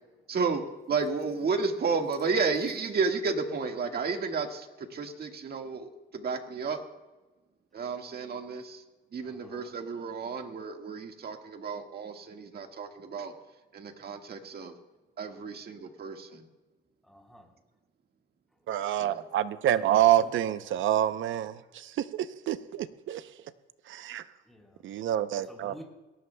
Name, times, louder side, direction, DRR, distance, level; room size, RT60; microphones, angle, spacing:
voice 1, 0.3-0.6 0.9-6.8 7.7-8.8 9.1-13.3 13.7-14.7 15.2-16.5 19.0-19.2, right 4 dB, 50° right, 4 dB, 1.7 m, -32 dB
voice 2, 9.2-9.7 15.3-15.5 17.0-17.6 18.5-18.7 19.8-20.6 24.4-24.9 25.5-25.8, equal, ahead, -1 dB, 3.9 m, -52 dB
voice 3, 18.7-23.3 23.9-24.3 24.8-25.7, right 11 dB, 75° right, 13 dB, 0.7 m, -27 dB
21.5 x 18.0 x 2.3 m, 1.1 s
cardioid pair, 90°, 20 cm